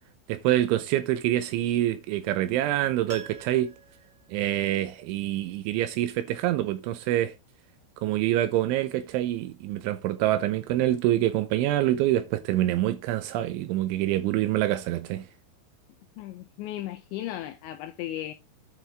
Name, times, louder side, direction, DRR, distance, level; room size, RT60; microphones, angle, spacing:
voice 1, 0.3-3.7 4.3-7.4 8.0-15.3, right 13 dB, 80° right, 2.9 m, -26 dB
Piano, 3.1-5.2 5.5-5.6, right 5 dB, 35° right, 1.9 m, -45 dB
voice 2, 16.2-18.3, left 13 dB, 85° left, 2.6 m, -36 dB
10.0 x 6.1 x 3.4 m
omnidirectional pair, 5.9 m